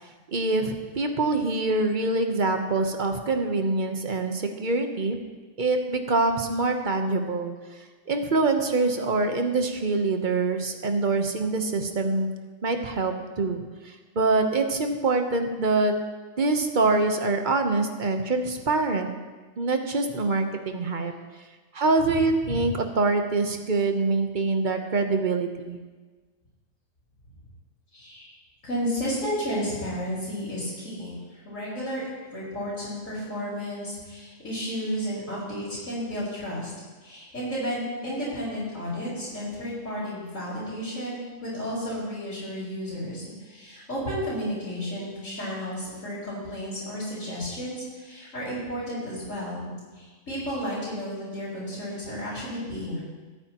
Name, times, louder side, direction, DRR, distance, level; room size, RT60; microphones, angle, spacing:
voice 1, 0.3-5.2 5.6-7.5 8.1-12.3 12.6-15.9 16.4-19.1 19.6-21.1 21.7-25.8, right 3 dB, 40° right, 5 dB, 1.1 m, -25 dB
voice 2, 22.0-22.7 27.9-28.3 28.6-32.0 32.3-36.7 37.0-53.0, equal, 85° left, -12 dB, 4.9 m, -32 dB
23.0 x 9.0 x 3.0 m, 1.3 s
omnidirectional pair, 1.4 m